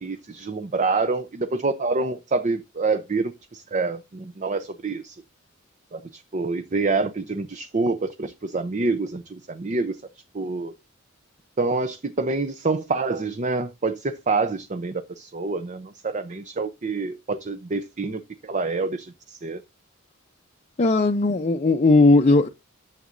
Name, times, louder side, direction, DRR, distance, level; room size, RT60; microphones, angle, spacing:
voice 1, 0.0-5.2 5.9-10.0 10.3-10.7 11.6-19.6, right 3 dB, 35° right, 0.6 m, -27 dB
voice 2, 20.8-22.5, left 2 dB, 35° left, 0.5 m, -17 dB
11.0 x 7.4 x 2.5 m
head